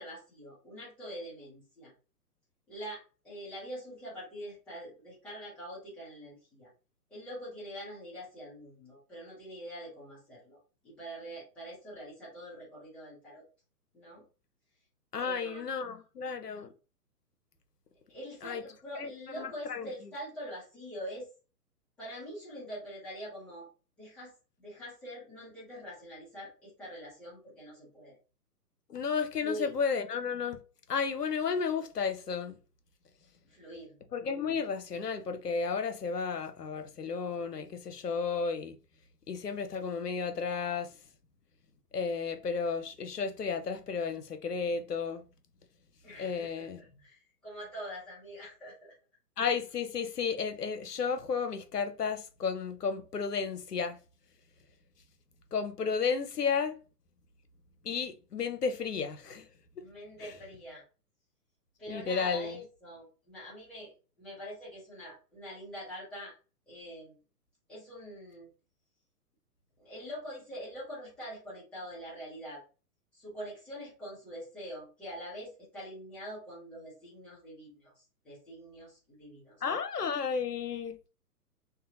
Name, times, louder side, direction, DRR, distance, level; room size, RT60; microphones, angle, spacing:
voice 1, 0.0-1.9 2.7-6.7 7.1-10.6 10.8-13.4 13.9-14.2 15.2-15.6 18.1-21.3 22.0-23.7 24.0-24.3 24.6-28.2 29.4-29.7 33.5-34.0 46.0-48.9 59.8-60.8 61.8-63.9 64.2-66.3 66.7-67.2 67.7-68.5 69.8-72.6 73.1-79.6, equal, ahead, 0.6 m, -44 dB
voice 2, 15.1-16.7 18.4-18.6 19.0-19.9 28.9-30.6 30.9-32.6 34.1-38.8 39.3-41.0 41.9-45.2 46.2-46.8 49.4-54.0 55.5-56.8 57.8-59.5 59.8-59.9 60.2-60.4 61.9-62.6 79.6-81.0, left 5 dB, 80° left, 0.7 m, -33 dB
2.7 x 2.2 x 2.7 m
figure-of-eight pair, 125°, 48 cm